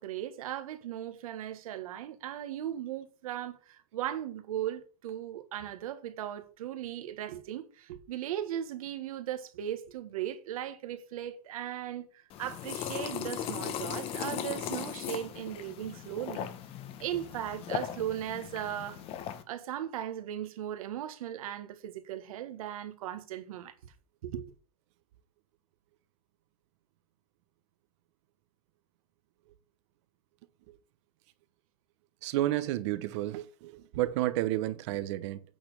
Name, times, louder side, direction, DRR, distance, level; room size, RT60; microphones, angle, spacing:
voice 1, 0.0-16.5 17.0-19.0 19.5-23.7 24.2-24.5, right 11 dB, 70° right, 1.5 m, -37 dB
sound 1, 12.3-19.4, left 10 dB, 30° left, 0.9 m, -38 dB
voice 2, 32.2-35.4, right 15 dB, 50° right, 1.0 m, -31 dB
8.6 x 4.3 x 6.6 m
supercardioid pair, 145°, 19 cm